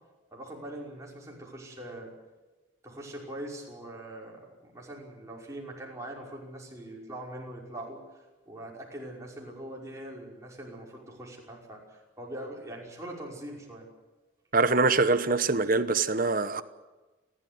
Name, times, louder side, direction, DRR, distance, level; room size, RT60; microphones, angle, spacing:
voice 1, 0.3-2.1 2.8-8.0 8.5-13.9, right 1 dB, 15° right, 5.5 m, -42 dB
voice 2, 14.5-16.6, right 3 dB, 45° right, 1.1 m, -24 dB
30.0 x 13.0 x 9.7 m
head